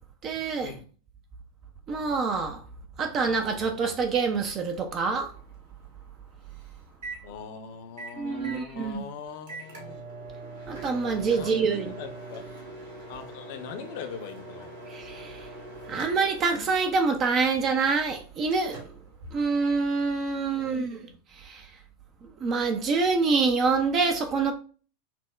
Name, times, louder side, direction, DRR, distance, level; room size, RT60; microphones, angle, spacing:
voice 1, 0.2-0.7 1.9-2.6 3.0-5.3 8.2-9.0 10.7-11.9 14.9-15.5 15.9-18.9 19.3-21.0 21.3-21.7 22.4-24.5, right 4 dB, 30° right, 0.4 m, -26 dB
Microwave oven, 4.3-20.0, right 2 dB, 55° right, 1.4 m, -44 dB
voice 2, 7.2-10.0 11.3-12.5 13.1-14.7 20.5-21.2, left 7 dB, 50° left, 0.6 m, -42 dB
5.8 x 2.1 x 2.3 m
figure-of-eight pair, 90°, 0 cm